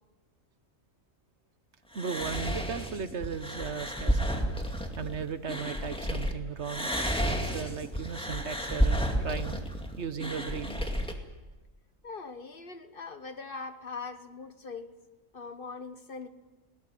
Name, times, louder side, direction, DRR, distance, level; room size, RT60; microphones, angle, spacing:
sound 1, 1.9-6.3 6.6-11.1, equal, 5° left, 2.2 m, -31 dB
voice 1, 1.9-4.4 5.0-6.9 7.2-9.7 10.0-10.8, right 6 dB, 60° right, 12 dB, 1.3 m, -36 dB
voice 2, 12.0-14.9 15.3-16.3, left 4 dB, 45° left, 10 dB, 1.3 m, -41 dB
20.0 x 18.0 x 9.9 m, 1.1 s
omnidirectional pair, 1.4 m